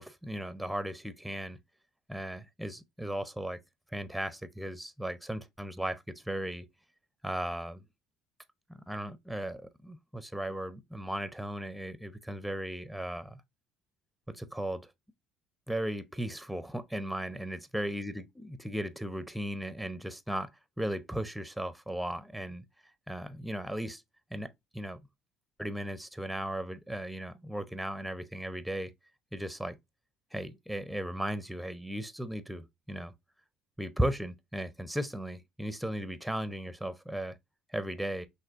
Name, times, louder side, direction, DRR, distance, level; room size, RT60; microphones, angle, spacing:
voice 1, 0.0-1.6 2.1-3.6 3.9-6.7 7.2-7.8 8.9-13.4 14.3-14.9 15.7-18.1 18.6-20.5 20.8-22.6 23.1-24.0 24.3-25.0 25.6-28.9 29.3-29.7 30.3-33.1 33.8-37.4 37.7-38.3, right 1 dB, ahead, 0.6 m, -36 dB
5.8 x 2.8 x 2.4 m
hypercardioid pair, 60°, 0 cm